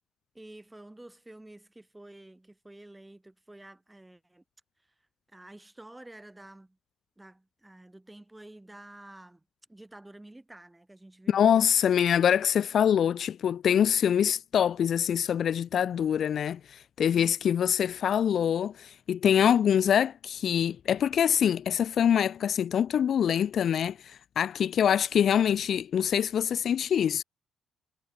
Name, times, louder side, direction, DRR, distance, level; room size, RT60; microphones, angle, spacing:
voice 1, 0.3-4.4 5.3-6.8 7.2-9.4 9.7-11.7 12.8-13.1, right 1 dB, 15° right, 6.1 m, -50 dB
voice 2, 11.3-27.2, left 9 dB, 55° left, 0.6 m, -25 dB
hypercardioid pair, 45°, 0 cm